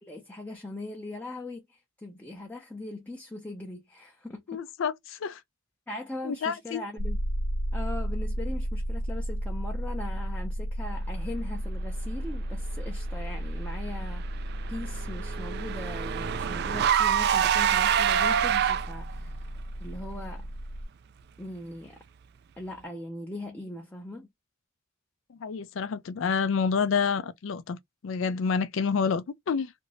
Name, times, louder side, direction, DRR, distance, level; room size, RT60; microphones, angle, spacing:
voice 1, 0.0-4.6 5.9-7.2 7.7-19.5 19.8-20.5 21.4-22.0 22.6-24.3, left 2 dB, 10° left, 0.5 m, -40 dB
voice 2, 4.5-5.4 6.2-6.8 25.3-27.8 28.0-29.7, left 5 dB, 65° left, 0.4 m, -28 dB
sound 1, 7.0-20.8, equal, 80° right, 0.9 m, -33 dB
Car / Engine, 14.1-19.1, right 9 dB, 50° right, 0.3 m, -26 dB
2.7 x 2.6 x 3.0 m
head